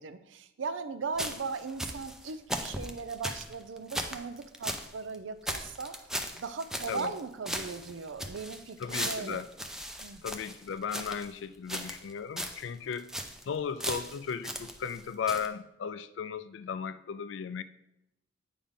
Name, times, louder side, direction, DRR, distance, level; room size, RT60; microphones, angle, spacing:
voice 1, 0.0-5.9 6.4-9.4 10.0-10.2, right 4 dB, 75° right, 12 dB, 0.5 m, -38 dB
sound 1, 1.2-4.9 5.1-5.2 5.5-7.2 7.5-11.3 11.7-12.1 12.4-12.6 12.9-13.4 13.8-15.0 15.3-15.5, equal, 5° right, 0.5 m, -37 dB
voice 2, 8.8-9.5 10.2-13.1 13.5-17.6, left 6 dB, 70° left, 13 dB, 0.4 m, -36 dB
8.5 x 5.1 x 3.7 m, 0.86 s
head